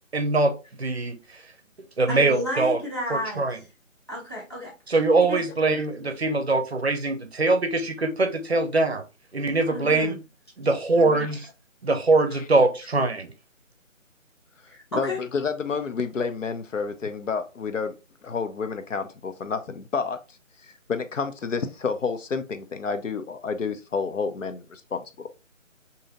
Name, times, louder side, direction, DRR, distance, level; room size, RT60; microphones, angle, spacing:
voice 1, 0.1-0.5 0.8-1.2 2.0-2.8 3.1-3.6 4.9-9.0 9.3-10.2 10.6-11.4 11.8-13.3, right 3 dB, 55° right, 0.6 m, -22 dB
voice 2, 2.1-3.4 4.1-4.7 5.2-5.4 9.7-10.1 10.9-11.3 14.7-15.2, left 1 dB, 20° left, 0.8 m, -32 dB
voice 3, 14.9-18.0 18.2-20.2 20.6-25.3, left 5 dB, 70° left, 0.6 m, -30 dB
2.8 x 2.7 x 3.6 m
figure-of-eight pair, 165°, 40 cm